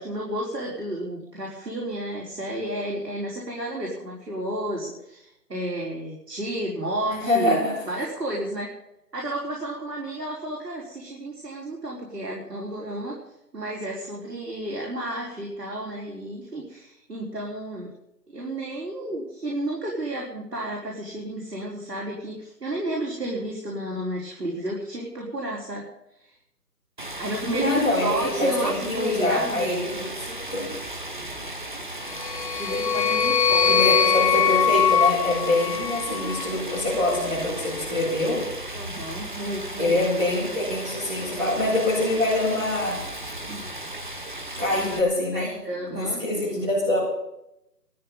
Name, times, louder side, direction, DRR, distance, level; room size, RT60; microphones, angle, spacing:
voice 1, 0.0-8.7 9.1-13.2 13.5-17.9 18.3-25.8 26.2-26.3 27.0-29.9 32.6-34.0 38.7-40.0 43.5-43.7 44.8-45.0 45.3-46.7, right 1 dB, 80° right, -3 dB, 4.5 m, -32 dB
voice 2, 7.2-7.8 27.5-30.7 33.7-38.5 39.8-43.0 44.6-45.5 45.9-47.0, left 1 dB, 10° right, -12 dB, 4.0 m, -25 dB
Stream, 27.0-45.0, right 1 dB, 30° right, 1.3 m, -36 dB
sound 1, 32.1-36.5, left 8 dB, 85° left, 1.2 m, -22 dB
18.0 x 13.5 x 5.5 m, 0.83 s
figure-of-eight pair, 175°, 48 cm